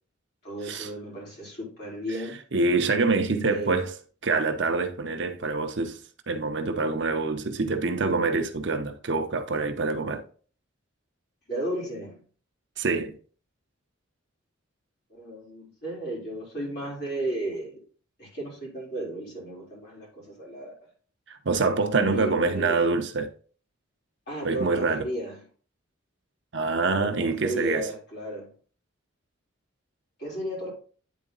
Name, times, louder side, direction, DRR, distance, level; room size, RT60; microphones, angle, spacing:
voice 1, 0.4-2.4 3.5-3.8 11.5-12.2 15.1-17.8 18.2-20.9 22.1-22.8 24.3-25.4 27.0-28.5 30.2-30.7, right 1 dB, 50° left, 3.6 m, -34 dB
voice 2, 2.5-3.9 4.2-6.0 6.3-10.2 12.8-13.2 21.3-23.3 24.4-25.0 26.5-27.9, right 3 dB, 60° right, 0.7 m, -25 dB
9.3 x 3.9 x 3.9 m
head